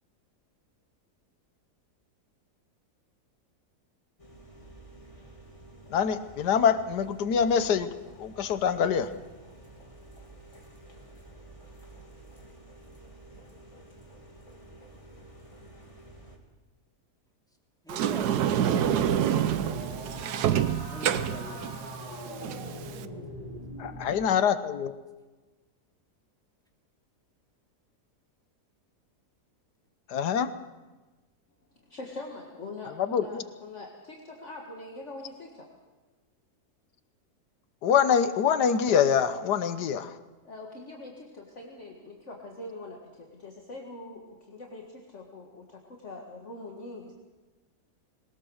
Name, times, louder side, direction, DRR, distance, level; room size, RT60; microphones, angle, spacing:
sound 1, 4.2-16.4, right 2 dB, 20° left, 2.7 m, -51 dB
voice 1, 5.9-9.1 23.8-24.9 30.1-30.5 33.0-33.4 37.8-40.2, left 7 dB, 85° left, 12 dB, 1.6 m, -25 dB
voice 2, 17.8-18.9 20.9-21.7 22.4-22.5, equal, ahead, 1 dB, 2.4 m, -44 dB
Sliding door, 17.9-23.0, right 10 dB, 75° right, 1.4 m, -27 dB
sound 2, 18.3-24.2, equal, 20° right, 8.2 m, -41 dB
voice 3, 31.9-35.7 40.4-47.1, left 2 dB, 45° left, 0 dB, 2.1 m, -43 dB
21.0 x 19.5 x 6.4 m, 1.2 s
omnidirectional pair, 1.7 m